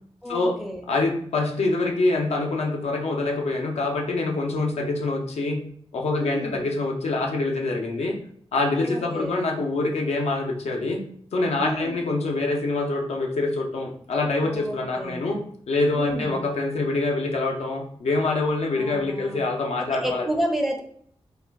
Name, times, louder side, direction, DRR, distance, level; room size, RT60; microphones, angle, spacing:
voice 1, 0.2-0.8 6.1-6.6 8.8-9.4 11.6-12.0 14.4-15.2 15.9-16.4 18.8-19.4 19.9-20.8, equal, ahead, 2 dB, 0.4 m, -31 dB
voice 2, 0.9-5.6 5.9-8.2 8.5-11.0 11.3-20.3, left 2 dB, 80° left, 1 dB, 0.5 m, -25 dB
2.3 x 2.2 x 3.3 m, 0.62 s
wide cardioid pair, 105°, 11 cm